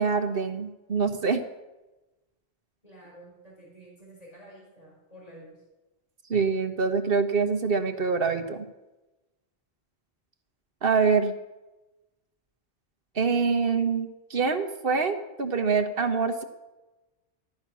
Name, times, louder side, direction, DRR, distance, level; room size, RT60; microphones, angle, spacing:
voice 1, 0.0-1.4 6.3-8.6 10.8-11.3 13.1-16.4, right 5 dB, 55° right, 8 dB, 1.5 m, -25 dB
voice 2, 2.8-5.6, right 1 dB, 35° left, -4 dB, 4.8 m, -50 dB
15.5 x 12.0 x 6.2 m, 1.1 s
omnidirectional pair, 1.1 m